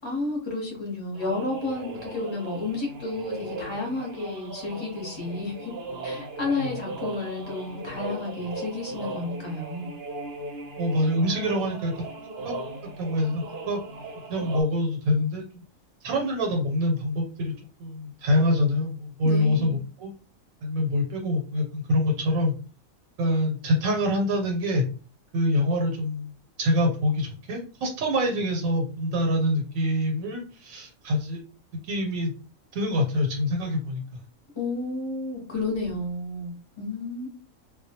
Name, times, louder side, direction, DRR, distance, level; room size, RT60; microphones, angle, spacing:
voice 1, 0.0-5.7 6.0-9.9 19.2-19.8 34.5-37.3, left 2 dB, 25° left, -1 dB, 0.6 m, -31 dB
sound 1, 1.1-14.6, right 2 dB, 60° right, 0.7 m, -38 dB
voice 2, 10.8-12.0 12.4-12.5 12.8-13.8 14.3-15.6 16.0-17.5 17.8-20.1 20.6-22.5 23.2-24.9 25.3-31.4 31.8-32.3 32.7-34.2, left 1 dB, 90° right, 1 dB, 1.0 m, -25 dB
2.2 x 2.1 x 2.7 m, 0.37 s
omnidirectional pair, 1.4 m